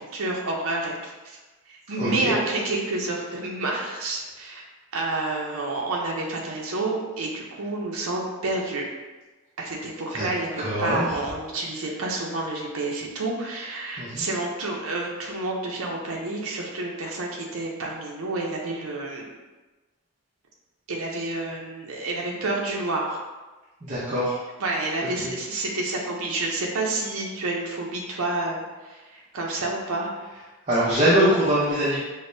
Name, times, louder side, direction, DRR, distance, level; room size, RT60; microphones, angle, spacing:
voice 1, 0.0-1.4 1.7-4.6 4.9-8.9 9.6-19.3 20.9-23.2 24.6-30.1, right 2 dB, 70° right, -1 dB, 0.6 m, -29 dB
voice 2, 2.0-2.3 10.1-10.3 10.6-11.1 14.0-14.2 23.8-24.4 25.2-25.3 30.7-32.0, right 1 dB, 30° right, -11 dB, 0.6 m, -22 dB
5.0 x 2.1 x 2.6 m, 1.2 s
head